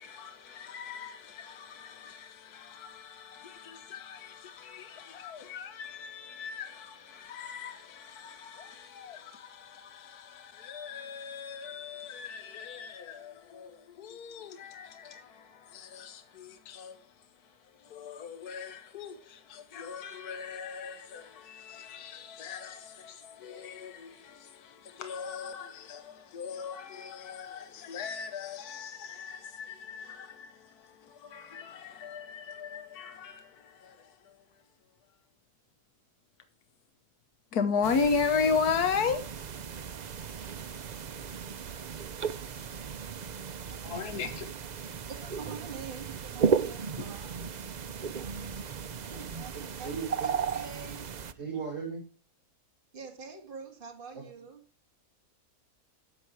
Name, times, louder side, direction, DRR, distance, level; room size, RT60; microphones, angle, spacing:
voice 1, 0.0-34.6 35.1-35.2 37.5-39.2 43.7-44.5, left 5 dB, 75° left, 1.6 m, -37 dB
sound 1, 37.8-51.3, right 6 dB, 75° right, 0.4 m, -35 dB
voice 2, 45.1-47.5 48.1-48.5 49.1-51.4 52.9-54.6, right 5 dB, 35° right, 2.4 m, -46 dB
voice 3, 51.4-52.0, right 6 dB, 50° right, 5.8 m, -35 dB
13.0 x 7.8 x 4.7 m
omnidirectional pair, 1.6 m